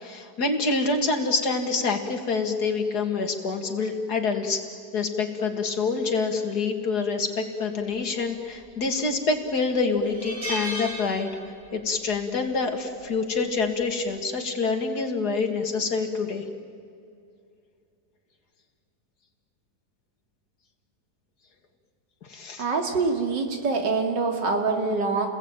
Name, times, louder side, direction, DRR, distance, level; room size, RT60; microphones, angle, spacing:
voice 1, 0.0-4.6 4.9-11.3 11.7-16.4 22.3-22.6, left 4 dB, 60° left, 4 dB, 2.8 m, -26 dB
sound 1, 8.6-9.1 9.5-9.6 10.0-11.8 12.1-12.4 13.6-13.9, equal, 20° right, 2.7 m, -35 dB
voice 2, 22.6-25.3, right 4 dB, 75° right, 3 dB, 3.3 m, -25 dB
30.0 x 20.5 x 9.1 m, 2.5 s
omnidirectional pair, 1.9 m